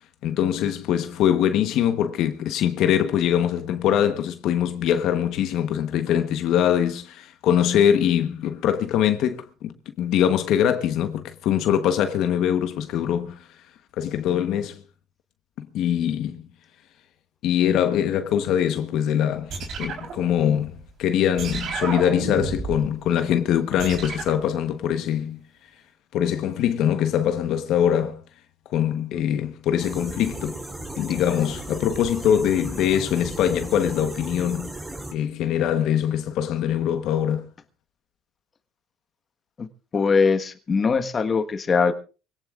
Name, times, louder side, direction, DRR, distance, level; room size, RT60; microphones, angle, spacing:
voice 1, 0.2-13.4 14.0-14.8 15.6-16.4 17.4-20.7 21.0-25.4 26.1-28.2 28.7-30.6 31.0-34.7 35.1-37.4, left 9 dB, 70° left, 1.1 m, -23 dB
sound 1, 19.5-20.8 21.4-22.9 23.8-24.5, right 5 dB, 55° right, 3.9 m, -32 dB
sound 2, 29.8-35.1, right 1 dB, 15° right, 3.5 m, -36 dB
voice 2, 39.9-41.9, left 5 dB, 35° left, 1.4 m, -21 dB
24.5 x 17.5 x 2.5 m
supercardioid pair, 90°, 0 cm